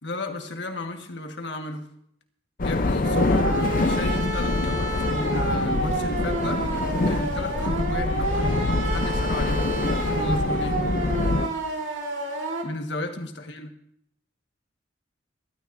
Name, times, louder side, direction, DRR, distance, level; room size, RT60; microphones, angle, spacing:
voice 1, 0.0-1.9 2.6-6.7 7.0-10.8 12.6-13.7, left 2 dB, 70° left, 1.6 m, -34 dB
sound 1, 2.6-11.5, left 2 dB, 45° left, 0.6 m, -25 dB
sound 2, 3.0-12.6, right 2 dB, 85° right, 2.5 m, -29 dB
sound 3, 5.1-10.6, right 1 dB, 40° right, 3.5 m, -42 dB
23.0 x 12.5 x 2.7 m
head